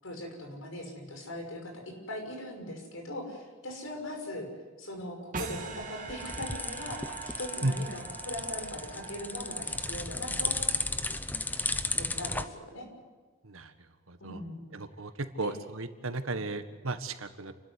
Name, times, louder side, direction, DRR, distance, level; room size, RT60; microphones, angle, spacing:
voice 1, 0.0-4.5 4.8-10.7 11.1-11.2 12.0-12.9 14.2-14.7 15.4-15.5, left 1 dB, 80° left, 3 dB, 6.1 m, -40 dB
sound 1, 5.3-10.5, right 5 dB, 40° right, 2.6 m, -43 dB
sound 2, 5.7-12.4, left 2 dB, 10° left, 0.8 m, -34 dB
voice 2, 14.1-14.4 14.7-15.1 15.4-17.5, right 2 dB, 85° right, 9 dB, 1.6 m, -34 dB
29.5 x 13.0 x 9.8 m, 1.4 s
head